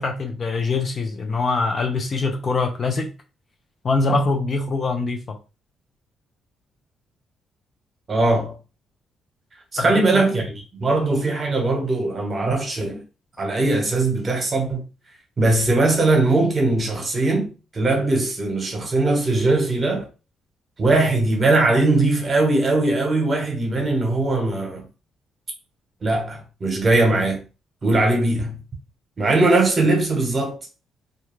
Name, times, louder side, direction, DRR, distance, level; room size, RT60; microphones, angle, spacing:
voice 1, 0.0-3.1 3.8-5.4 9.8-10.3, left 3 dB, 45° left, 0.5 m, -23 dB
voice 2, 8.1-8.6 9.7-13.0 13.4-14.9 15.4-20.1 20.8-24.8 26.0-27.4 27.8-28.6 29.2-30.6, right 2 dB, 35° right, 1.1 m, -20 dB
2.4 x 2.3 x 3.1 m
cardioid pair, 90°, 0 cm